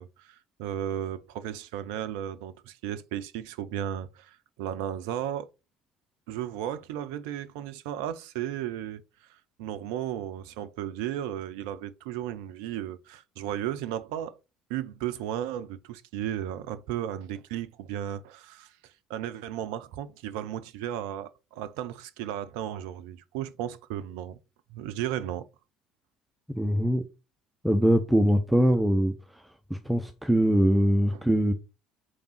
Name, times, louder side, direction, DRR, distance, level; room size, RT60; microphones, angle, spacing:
voice 1, 0.0-5.5 6.3-9.0 9.3-14.3 14.7-24.4 24.7-25.5, right 11 dB, 65° right, 0.4 m, -35 dB
voice 2, 26.6-27.0 27.6-31.5, equal, 5° right, 0.7 m, -23 dB
4.8 x 3.5 x 5.5 m
figure-of-eight pair, 55°, 0 cm